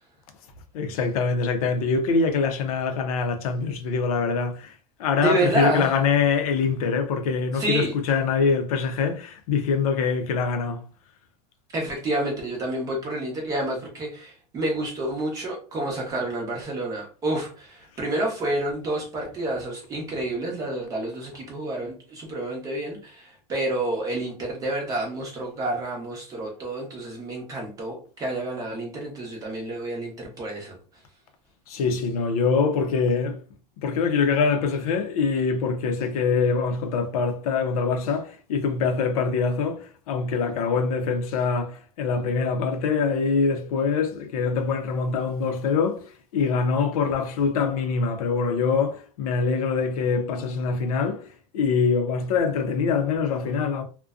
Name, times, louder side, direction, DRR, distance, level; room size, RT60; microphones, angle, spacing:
voice 1, 0.7-4.7 5.0-10.8 31.7-33.4 33.8-51.3 51.5-53.8, left 5 dB, 65° left, 0.5 m, -24 dB
voice 2, 5.2-5.9 7.5-8.0 11.7-30.7, right 2 dB, 15° right, 0.7 m, -29 dB
2.4 x 2.1 x 2.4 m
supercardioid pair, 160°, 20 cm